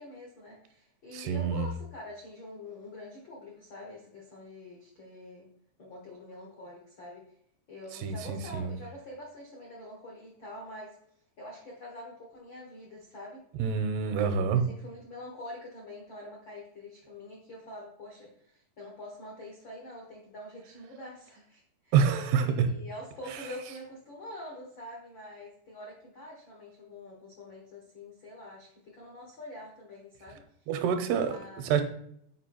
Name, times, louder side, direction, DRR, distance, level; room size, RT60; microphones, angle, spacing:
voice 1, 0.0-5.5 5.8-7.3 7.7-11.0 11.4-13.4 14.5-21.9 22.4-30.4 31.2-31.8, left 1 dB, 90° left, -2 dB, 1.0 m, -45 dB
voice 2, 1.1-1.7 8.0-8.7 13.6-14.6 21.9-22.7 30.7-31.3 31.6-31.8, right 7 dB, 80° right, 8 dB, 2.8 m, -27 dB
8.1 x 5.0 x 4.4 m, 0.67 s
omnidirectional pair, 4.9 m